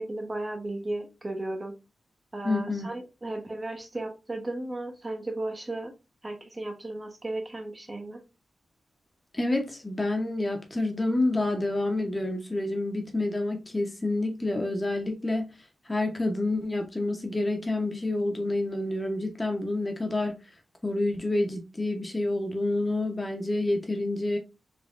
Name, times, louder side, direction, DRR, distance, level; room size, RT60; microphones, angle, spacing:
voice 1, 0.0-1.8 2.3-5.9 6.2-8.2, right 2 dB, 30° right, 0.8 m, -35 dB
voice 2, 2.4-2.9 9.3-15.5 15.9-20.4 20.8-24.4, left 2 dB, 25° left, 0.7 m, -28 dB
3.5 x 3.0 x 2.4 m
wide cardioid pair, 80°, 0 cm